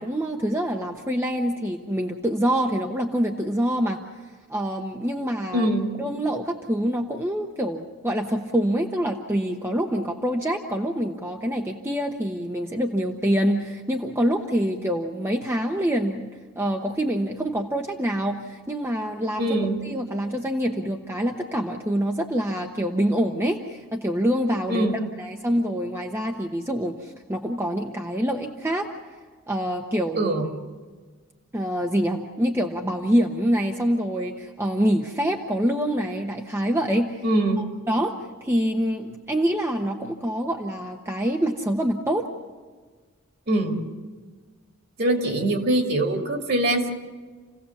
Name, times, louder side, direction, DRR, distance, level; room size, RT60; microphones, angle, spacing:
voice 1, 0.0-4.0 4.5-5.7 6.0-19.5 19.8-28.8 29.5-30.3 31.5-37.2 37.9-38.1 38.4-42.2, equal, 10° right, 2 dB, 0.9 m, -25 dB
voice 2, 5.5-6.1 19.4-19.8 24.7-25.0 30.1-30.5 37.2-37.7 43.5-43.8 45.0-46.9, right 1 dB, 45° right, 3 dB, 2.4 m, -23 dB
29.0 x 16.5 x 7.2 m, 1.5 s
head